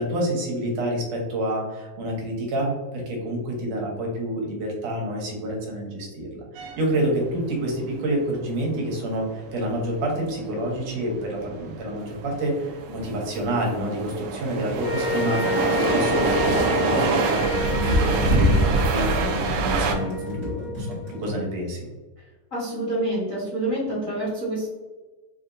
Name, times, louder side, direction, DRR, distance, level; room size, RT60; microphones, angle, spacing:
voice 1, 0.0-21.8, right 1 dB, 70° right, -1 dB, 2.0 m, -28 dB
sound 1, 6.6-19.9, right 2 dB, 90° right, 1.4 m, -25 dB
sound 2, 14.8-21.2, left 2 dB, 90° left, 1.1 m, -29 dB
sound 3, 16.2-21.4, left 2 dB, 40° right, 0.7 m, -35 dB
voice 2, 22.5-24.7, right 1 dB, 70° left, -8 dB, 0.7 m, -27 dB
4.9 x 2.8 x 2.5 m, 1.2 s
omnidirectional pair, 3.3 m